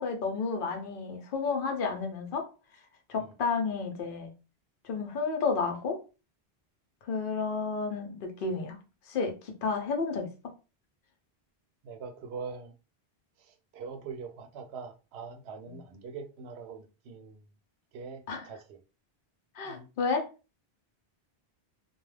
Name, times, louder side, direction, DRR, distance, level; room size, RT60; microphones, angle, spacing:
voice 1, 0.0-2.5 3.1-4.3 4.8-6.0 7.1-8.8 9.1-10.3 15.7-15.8 18.3-18.4 19.6-20.3, left 4 dB, 60° left, 0.8 m, -31 dB
voice 2, 11.8-12.7 13.4-17.4 17.9-18.8 19.6-19.9, right 5 dB, 85° right, 0.8 m, -43 dB
2.3 x 2.2 x 3.2 m
omnidirectional pair, 1.0 m